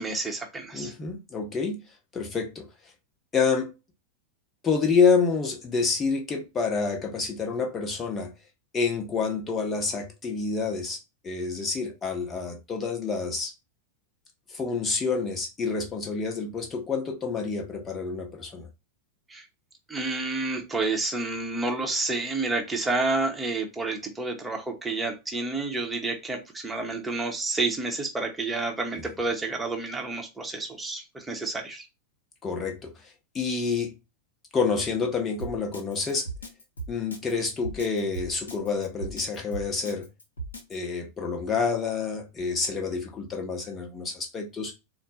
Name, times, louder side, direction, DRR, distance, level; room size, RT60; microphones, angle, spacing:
voice 1, 0.0-0.9 19.3-19.5 19.9-31.9, right 3 dB, 10° right, 0.9 m, -29 dB
voice 2, 0.7-1.8 2.1-2.7 3.3-3.7 4.6-8.3 8.7-13.5 14.5-18.7 32.4-34.0 34.5-36.3 36.9-40.1 40.7-44.7, left 5 dB, 20° left, 1.0 m, -28 dB
Drum kit, 35.4-40.7, right 3 dB, 75° left, 0.9 m, -37 dB
4.3 x 2.2 x 4.1 m
figure-of-eight pair, 90°, 0 cm